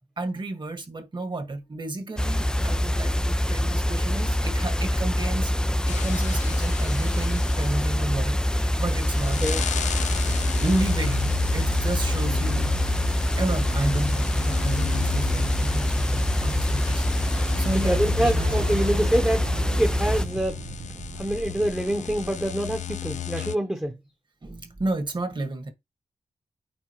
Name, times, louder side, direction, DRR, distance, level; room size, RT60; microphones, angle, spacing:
voice 1, 0.2-5.5 5.9-9.4 10.6-12.7 13.4-17.1 17.6-18.5 24.4-25.7, right 2 dB, 40° right, 1.7 m, -31 dB
sound 1, 2.2-20.3, equal, 5° left, 0.4 m, -24 dB
sound 2, 5.9-23.6, left 11 dB, 85° left, 0.4 m, -35 dB
sound 3, 16.9-17.1 17.4-23.6, right 5 dB, 75° right, 0.9 m, -40 dB
voice 2, 17.7-20.6 21.2-24.0, right 1 dB, 15° right, 1.0 m, -26 dB
8.7 x 4.1 x 3.1 m
cardioid pair, 60°, 12 cm